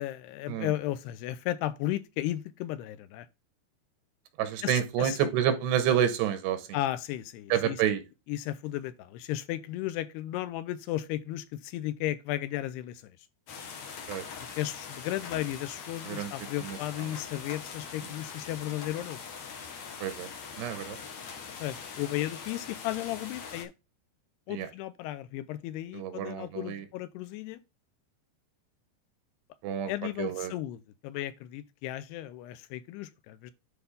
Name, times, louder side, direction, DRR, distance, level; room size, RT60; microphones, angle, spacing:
voice 1, 0.0-3.3 4.6-5.3 6.7-7.8 8.3-13.1 14.6-19.2 21.6-23.7 24.5-27.6 29.9-33.5, left 14 dB, 80° left, 2.7 m, -34 dB
voice 2, 4.4-6.7 7.5-8.0 14.1-14.2 16.1-16.3 16.6-16.8 20.0-20.3 20.6-21.0 24.5-24.7 25.9-26.8 29.6-29.9 30.2-30.5, right 10 dB, 85° right, 3.4 m, -28 dB
sound 1, 13.5-23.6, left 6 dB, 55° left, 2.1 m, -42 dB
10.5 x 4.6 x 3.6 m
omnidirectional pair, 4.8 m